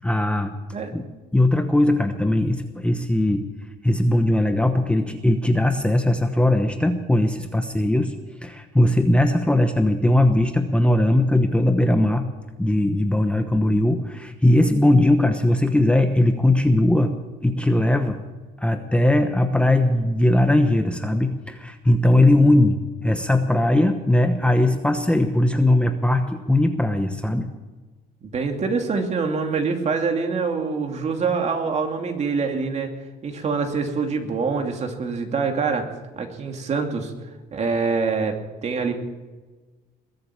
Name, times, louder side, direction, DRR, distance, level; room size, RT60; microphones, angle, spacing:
voice 1, 0.0-0.5 0.9-1.0 1.3-3.5 3.8-8.1 8.4-12.3 12.6-17.1 17.4-18.2 18.6-27.5, left 1 dB, 5° left, 7 dB, 1.0 m, -19 dB
voice 2, 28.2-32.9 33.2-35.9 36.1-37.1 37.5-38.9, right 4 dB, 40° right, 4 dB, 2.6 m, -25 dB
21.5 x 7.9 x 8.7 m, 1.3 s
cardioid pair, 110°, 17 cm